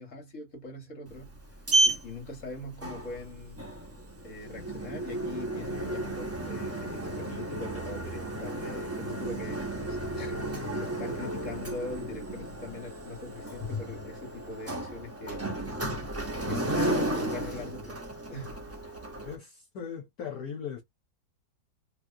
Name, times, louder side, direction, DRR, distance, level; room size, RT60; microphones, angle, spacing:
voice 1, 0.0-1.4 1.8-3.6 4.2-15.4 16.5-18.0 18.3-18.6, left 2 dB, 50° left, 1.8 m, -42 dB
Sliding door, 1.1-19.4, right 2 dB, 15° right, 0.5 m, -33 dB
voice 2, 19.2-20.8, left 7 dB, 65° left, 1.4 m, -38 dB
3.3 x 2.9 x 2.6 m
omnidirectional pair, 1.8 m